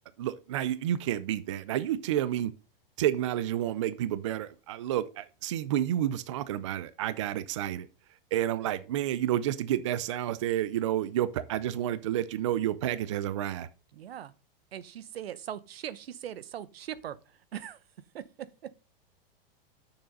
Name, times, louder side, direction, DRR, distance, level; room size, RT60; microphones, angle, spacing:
voice 1, 0.2-2.5 3.0-7.9 8.3-13.7, right 12 dB, 30° right, 0.4 m, -30 dB
voice 2, 13.9-14.3 14.7-17.8 18.1-18.8, right 10 dB, 90° right, 1.0 m, -41 dB
6.8 x 6.3 x 5.3 m
supercardioid pair, 175°, 29 cm